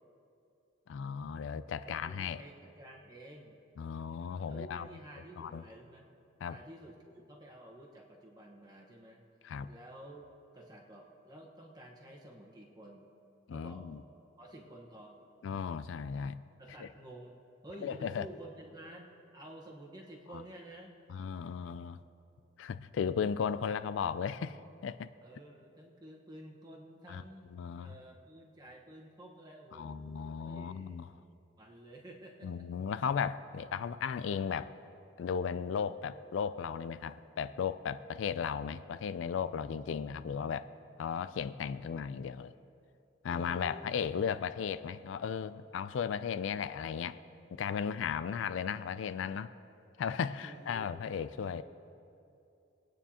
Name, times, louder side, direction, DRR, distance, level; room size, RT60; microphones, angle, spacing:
voice 1, 0.9-2.4 3.8-4.9 5.4-5.6 6.4-6.6 9.4-9.7 13.5-14.0 15.4-16.4 16.8-16.9 17.8-18.3 20.3-20.4 21.1-22.0 22.6-25.1 27.1-27.2 27.5-27.9 29.7-31.1 32.4-34.7 35.2-40.7 41.0-42.5 43.2-47.2 47.5-49.5 50.0-51.6, left 7 dB, 75° left, 14 dB, 0.3 m, -36 dB
voice 2, 1.8-3.6 4.5-6.1 6.5-9.2 9.7-10.3 10.5-13.1 13.5-13.9 14.4-15.2 16.6-17.4 17.6-19.1 19.3-20.9 25.2-27.5 27.8-31.0 31.6-32.7 43.3-43.8 48.3-48.7 49.0-49.1 50.4-50.9 51.4-51.6, right 1 dB, 20° right, -1 dB, 1.2 m, -51 dB
21.0 x 9.2 x 2.9 m, 2.7 s
head